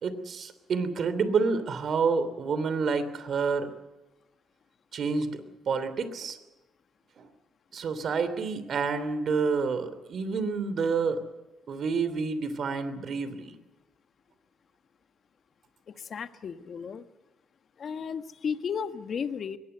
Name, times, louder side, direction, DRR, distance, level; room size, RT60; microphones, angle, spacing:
voice 1, 0.0-3.7 4.9-6.4 7.2-7.3 7.7-11.2 11.7-13.5, right 5 dB, 55° right, 12 dB, 3.0 m, -28 dB
voice 2, 16.0-17.0 17.8-19.6, left 6 dB, 55° left, 10 dB, 1.5 m, -34 dB
22.5 x 19.0 x 8.0 m, 1.1 s
cardioid pair, 90°, 0 cm